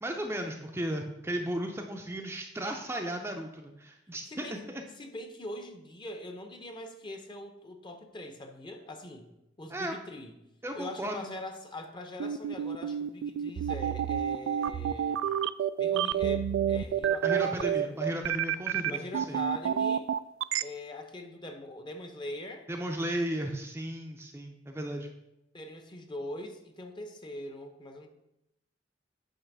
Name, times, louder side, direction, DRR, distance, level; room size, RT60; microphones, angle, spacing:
voice 1, 0.0-4.8 9.7-9.9 10.6-11.3 17.2-19.0 19.3-19.4 22.7-25.1, right 1 dB, 15° right, 2 dB, 0.5 m, -35 dB
voice 2, 4.3-4.6 5.0-9.3 9.6-10.3 10.7-15.2 15.8-18.2 18.9-20.1 20.6-22.7 25.5-28.1, left 1 dB, 25° left, 5 dB, 0.8 m, -42 dB
sound 1, 12.2-20.6, right 9 dB, 85° right, 0.3 m, -29 dB
8.8 x 3.1 x 6.0 m, 0.87 s
head